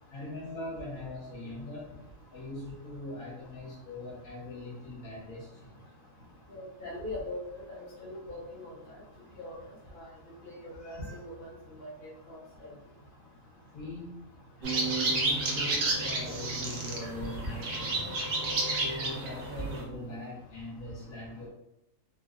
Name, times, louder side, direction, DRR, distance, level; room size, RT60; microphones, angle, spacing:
voice 1, 0.1-1.9 2.3-5.8 13.7-14.3 14.6-18.3 18.8-21.5, left 2 dB, 75° left, -4 dB, 1.4 m, -41 dB
voice 2, 6.5-8.7 9.4-9.6 9.9-10.0 10.4-11.5 11.8-12.4, left 1 dB, 40° left, -6 dB, 1.1 m, -41 dB
sound 1, 14.6-19.8, right 2 dB, 55° right, 0.8 m, -31 dB
3.1 x 2.5 x 2.4 m, 0.84 s
omnidirectional pair, 1.5 m